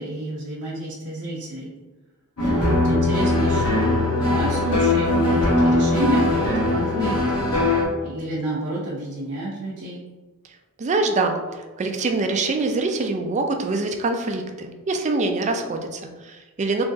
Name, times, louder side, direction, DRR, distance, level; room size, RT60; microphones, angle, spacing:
voice 1, 0.0-1.7 2.5-7.7 8.0-10.0, right 1 dB, 85° right, -5 dB, 0.7 m, -30 dB
sound 1, 2.4-7.8, left 2 dB, 85° left, 1.1 m, -20 dB
voice 2, 10.8-11.4 11.8-16.8, right 3 dB, 35° right, 4 dB, 0.4 m, -24 dB
3.6 x 3.0 x 2.6 m, 1.2 s
head